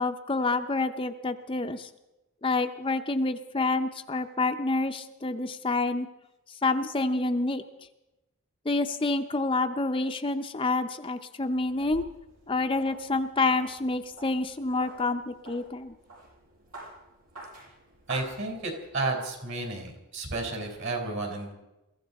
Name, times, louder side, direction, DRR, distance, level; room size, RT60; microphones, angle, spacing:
voice 1, 0.0-1.9 2.4-6.1 6.6-7.6 8.7-12.1 12.5-15.9, left 3 dB, 25° left, 7 dB, 0.6 m, -28 dB
sound 1, 11.5-19.0, right 2 dB, 80° right, 6.8 m, -48 dB
voice 2, 18.1-21.5, right 3 dB, 55° right, 2 dB, 4.2 m, -32 dB
23.0 x 15.0 x 4.1 m, 0.95 s
head